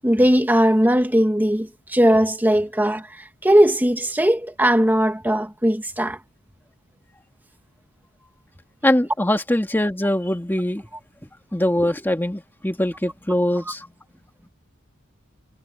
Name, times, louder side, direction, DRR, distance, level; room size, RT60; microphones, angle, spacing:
voice 1, 0.0-6.2, equal, 10° right, 1.7 m, -19 dB
voice 2, 8.8-10.8 11.5-13.9, left 1 dB, 10° left, 1.8 m, -22 dB
head